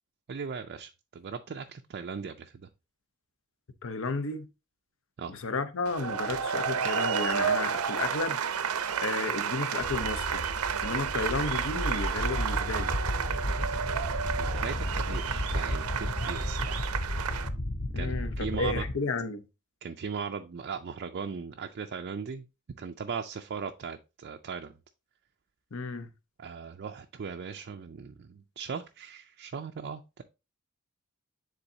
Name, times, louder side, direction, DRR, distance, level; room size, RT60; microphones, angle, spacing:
voice 1, 0.3-2.5 5.2-5.3 14.3-16.9 18.0-18.8 19.8-22.4 22.8-24.7 26.4-30.2, right 6 dB, 45° right, 0.4 m, -38 dB
voice 2, 3.8-4.5 5.3-8.4 9.0-10.4 10.8-12.9 17.9-19.4 25.7-26.1, left 3 dB, 60° left, 0.8 m, -32 dB
sound 1, 5.9-17.5, right 7 dB, 85° right, 0.6 m, -31 dB
sound 2, 9.8-18.9, left 1 dB, 30° left, 0.5 m, -33 dB
9.8 x 3.9 x 2.7 m
head